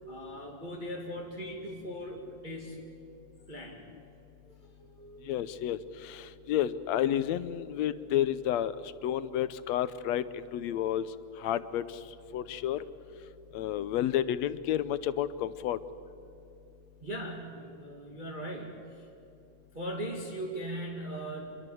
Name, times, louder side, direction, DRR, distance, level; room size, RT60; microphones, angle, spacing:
voice 1, 0.0-2.8 3.5-3.8 4.8-5.3 17.0-19.1 19.7-21.7, right 1 dB, 15° right, -1 dB, 2.3 m, -39 dB
voice 2, 5.3-8.7 9.0-11.1 11.4-11.8 12.3-12.8 13.5-15.8, left 11 dB, 75° left, 14 dB, 1.8 m, -30 dB
27.0 x 22.5 x 7.8 m, 2.8 s
omnidirectional pair, 3.4 m